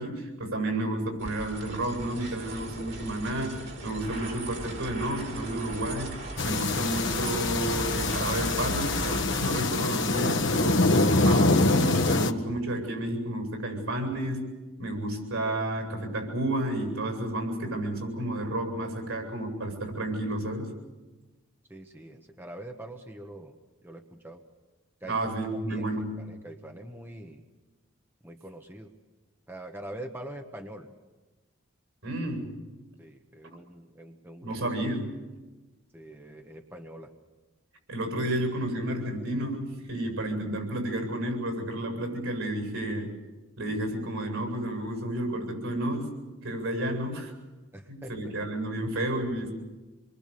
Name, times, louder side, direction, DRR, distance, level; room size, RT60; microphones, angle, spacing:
voice 1, 0.0-6.2 6.4-14.5 14.8-20.7 25.1-26.2 32.0-32.6 34.4-35.1 37.9-43.1 43.6-46.1 46.4-47.3 47.9-49.5, right 1 dB, 85° right, 4 dB, 7.8 m, -31 dB
sound 1, 1.2-11.2, right 2 dB, 60° right, 5.5 m, -38 dB
sound 2, 6.4-12.3, left 2 dB, 60° left, 1.2 m, -25 dB
voice 2, 21.7-23.5 23.8-24.4 25.0-25.2 25.7-27.4 28.2-28.9 29.5-30.9 33.0-34.5 35.9-37.1 47.7-48.1, right 1 dB, 10° right, 3 dB, 1.2 m, -44 dB
27.0 x 23.5 x 6.9 m, 1.2 s
head